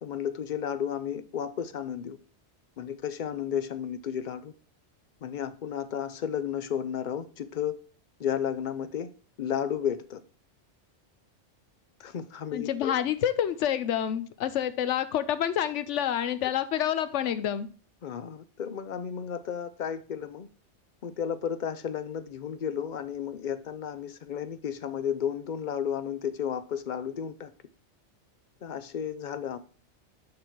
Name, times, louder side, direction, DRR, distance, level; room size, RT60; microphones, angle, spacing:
voice 1, 0.0-2.2 2.8-4.5 5.2-7.8 8.2-9.1 9.4-10.2 12.0-12.9 18.0-20.5 21.0-27.5 28.6-29.6, left 8 dB, 50° left, 0.6 m, -33 dB
voice 2, 12.5-17.7, left 10 dB, 80° left, 1.0 m, -28 dB
6.7 x 5.4 x 4.5 m
omnidirectional pair, 1.2 m